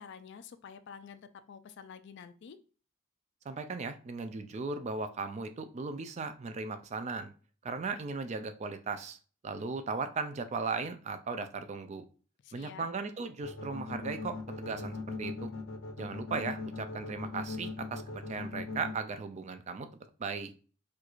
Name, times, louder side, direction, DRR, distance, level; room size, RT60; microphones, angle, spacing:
voice 1, 0.0-2.6 12.4-12.9, left 6 dB, 60° left, 11 dB, 0.3 m, -49 dB
voice 2, 3.5-7.3 7.6-9.2 9.4-12.0 12.5-15.5 16.0-19.9 20.2-20.5, right 4 dB, 35° right, 9 dB, 0.3 m, -37 dB
sound 1, 13.4-18.9, left 3 dB, 80° left, 0.7 m, -39 dB
4.5 x 2.5 x 2.3 m, 0.38 s
head